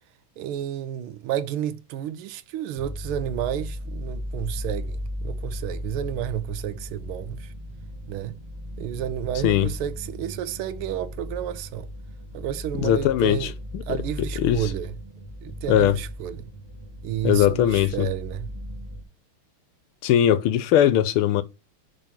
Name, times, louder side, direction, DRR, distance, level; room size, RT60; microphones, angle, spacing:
voice 1, 0.4-7.5 8.1-8.4 8.8-11.9 12.3-13.5 13.9-14.9 15.4-16.5 17.0-18.5, right 11 dB, 80° right, 1.6 m, -31 dB
sound 1, 2.8-19.0, equal, 25° right, 0.8 m, -36 dB
voice 2, 12.8-13.8 14.4-14.6 15.7-16.0 17.2-18.1 20.0-21.4, left 11 dB, 80° left, 1.6 m, -20 dB
5.3 x 4.6 x 5.6 m
omnidirectional pair, 2.4 m